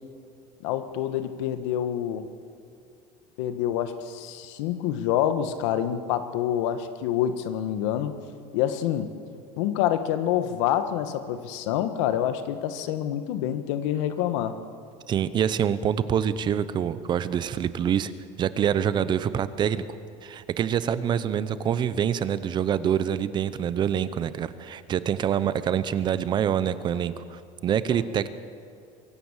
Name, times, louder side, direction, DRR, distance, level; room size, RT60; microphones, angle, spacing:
voice 1, 0.6-2.3 3.4-8.1 8.5-9.1 9.6-14.6, left 10 dB, 90° left, 10 dB, 1.5 m, -27 dB
voice 2, 15.1-18.1 18.4-19.8 20.2-28.3, right 9 dB, 30° right, 14 dB, 0.8 m, -26 dB
24.0 x 16.5 x 7.4 m, 2.4 s
cardioid pair, 155°, 15 cm